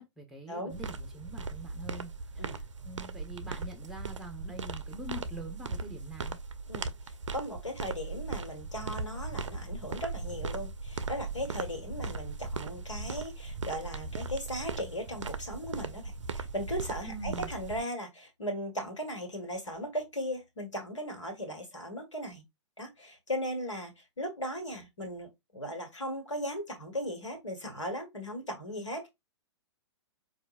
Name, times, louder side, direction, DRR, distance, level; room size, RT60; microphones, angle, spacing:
voice 1, 0.0-6.4 17.1-17.5, right 1 dB, ahead, 0.9 m, -44 dB
sound 1, 0.7-17.8, right 4 dB, 85° right, 0.4 m, -38 dB
voice 2, 6.7-22.4 22.8-29.1, equal, 90° left, 1.3 m, -37 dB
4.8 x 2.5 x 2.4 m
hypercardioid pair, 115°, 15 cm